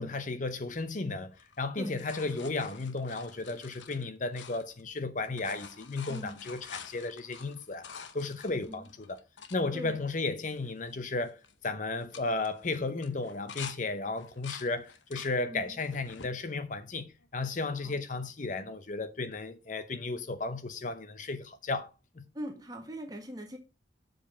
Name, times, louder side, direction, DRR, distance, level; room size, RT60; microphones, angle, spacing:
voice 1, 0.0-7.9 8.1-9.2 9.5-22.2, left 3 dB, 40° left, 0.7 m, -34 dB
sound 1, 1.3-5.0 5.2-9.6 10.2-10.3 10.5-10.9 11.2-11.5 12.0-13.8 14.1-15.3 15.8-16.3 17.0-17.7 19.3-19.4, left 6 dB, 80° left, 1.0 m, -48 dB
voice 2, 22.3-23.6, equal, 20° right, 1.6 m, -41 dB
7.3 x 5.0 x 5.6 m
head